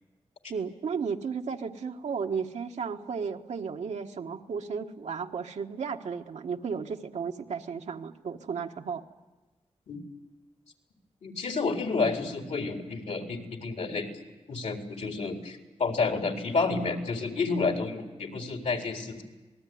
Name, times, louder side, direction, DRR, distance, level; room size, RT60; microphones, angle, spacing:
voice 1, 0.5-9.0, right 6 dB, 85° right, 3 dB, 1.5 m, -34 dB
voice 2, 11.2-14.1 14.5-19.2, left 4 dB, 80° left, 3 dB, 4.0 m, -30 dB
27.0 x 19.5 x 9.5 m, 1.2 s
cardioid pair, 75°, 12 cm